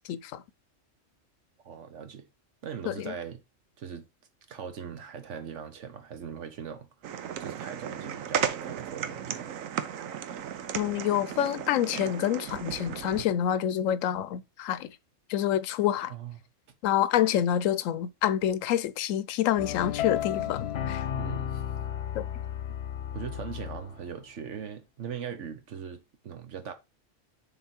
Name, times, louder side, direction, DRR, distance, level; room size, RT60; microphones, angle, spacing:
voice 1, 0.1-0.4 2.9-3.1 10.7-15.0 15.3-16.1 16.8-21.0 22.1-22.3, left 11 dB, 85° left, 1.0 m, -27 dB
voice 2, 1.6-2.3 2.6-3.4 3.8-4.0 4.5-9.5 16.1-16.4 21.2-21.7 23.1-26.7, right 7 dB, 65° right, 1.3 m, -40 dB
Element Fire, 7.0-13.3, right 9 dB, 90° right, 1.1 m, -35 dB
sound 1, 19.6-24.1, left 10 dB, 55° left, 1.0 m, -33 dB
6.9 x 3.7 x 4.4 m
omnidirectional pair, 1.3 m